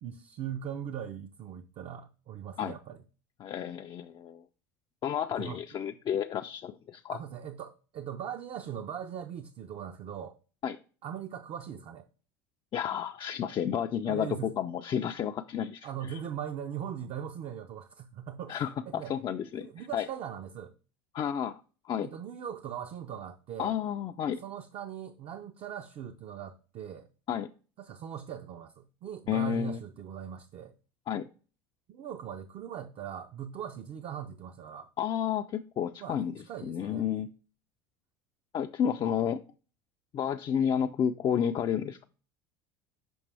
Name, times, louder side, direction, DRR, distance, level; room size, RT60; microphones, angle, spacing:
voice 1, 0.0-3.0 5.3-5.6 7.1-10.4 11.0-12.0 14.0-14.5 15.8-19.1 19.6-20.7 22.0-23.7 24.4-27.1 27.8-30.7 31.9-34.9 36.0-36.2 36.5-37.0, right 9 dB, 45° right, 0.6 m, -40 dB
voice 2, 3.4-4.4 5.0-7.2 10.6-10.8 12.7-16.2 18.5-20.1 21.1-21.6 21.9-22.1 23.6-24.4 27.3-27.5 29.3-29.8 31.1-31.3 35.0-37.3 38.5-39.4 40.1-42.1, left 8 dB, 35° left, 0.4 m, -31 dB
6.1 x 5.2 x 3.4 m
hypercardioid pair, 80°, 13 cm